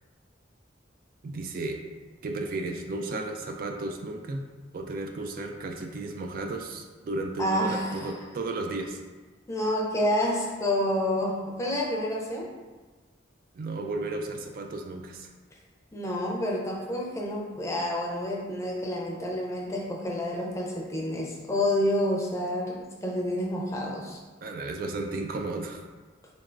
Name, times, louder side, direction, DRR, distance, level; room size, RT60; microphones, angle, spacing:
voice 1, 1.2-1.8 2.2-4.5 4.7-9.0 13.5-15.3 24.4-25.8, right 2 dB, 50° right, 3 dB, 0.3 m, -34 dB
voice 2, 7.4-8.1 9.5-12.5 15.9-24.2, left 1 dB, 15° left, -2 dB, 0.5 m, -29 dB
3.9 x 3.3 x 2.5 m, 1.3 s
head